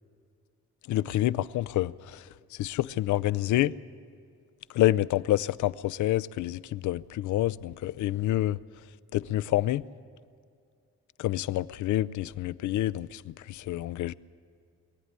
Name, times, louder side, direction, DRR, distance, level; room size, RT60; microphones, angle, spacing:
voice 1, 0.9-2.2 2.6-3.7 4.7-8.6 9.1-9.8 11.2-14.1, left 14 dB, 75° left, 0.6 m, -28 dB
23.0 x 14.5 x 9.6 m
cardioid pair, 90°, 30 cm